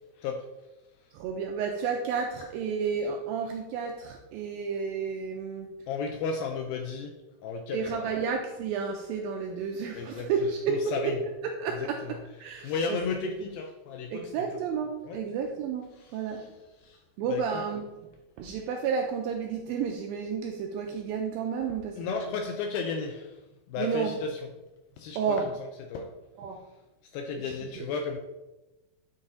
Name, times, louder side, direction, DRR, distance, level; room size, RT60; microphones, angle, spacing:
voice 1, 1.1-5.8 7.7-10.9 11.4-12.0 12.4-13.0 13.2-13.3 14.1-16.5 17.2-17.9 18.4-22.3 23.8-24.2 25.2-25.5 26.4-26.6 27.4-27.9, right 6 dB, 85° right, 2 dB, 2.1 m, -31 dB
voice 2, 5.9-7.2 7.4-8.2 9.9-11.2 11.7-12.2 12.4-14.3 15.0-15.2 16.0-16.5 16.8-17.0 17.3-17.6 22.0-23.3 23.7-24.4 25.0-25.4 25.9-26.1 27.1-28.2, left 5 dB, 80° left, 4 dB, 2.1 m, -34 dB
9.5 x 4.0 x 3.9 m, 1.0 s
omnidirectional pair, 4.7 m